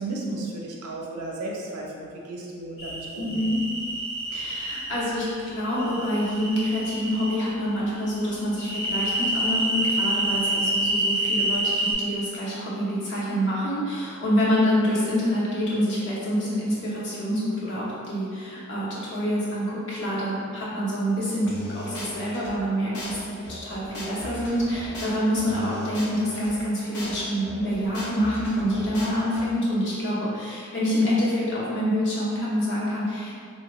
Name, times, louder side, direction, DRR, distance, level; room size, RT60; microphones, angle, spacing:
voice 1, 0.0-3.2, right 2 dB, 80° right, -2 dB, 0.6 m, -34 dB
sound 1, 2.8-4.8 5.8-7.3 8.6-11.9, right 1 dB, 30° left, 1.0 m, -27 dB
voice 2, 3.2-3.6 4.3-33.4, equal, 55° left, -7 dB, 0.9 m, -26 dB
sound 2, 21.5-22.5 22.9-23.1 23.4-26.5 26.9-27.1 27.4-29.4, equal, 85° left, 0.7 m, -37 dB
3.4 x 2.1 x 3.0 m, 2.2 s
head